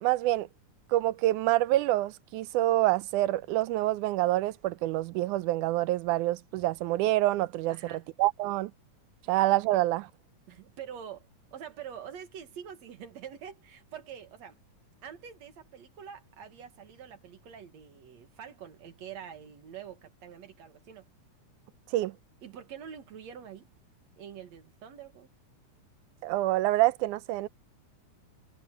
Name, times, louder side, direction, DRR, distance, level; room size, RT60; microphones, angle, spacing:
voice 1, 0.0-0.5 0.9-8.7 9.3-10.1 21.9-22.2 26.2-27.5, right 16 dB, 90° right, 2.1 m, -27 dB
voice 2, 7.7-8.0 9.2-9.3 10.5-14.6 15.0-21.0 22.4-23.7 24.2-25.3, right 8 dB, 65° right, 2.7 m, -45 dB
omnidirectional pair, 3.5 m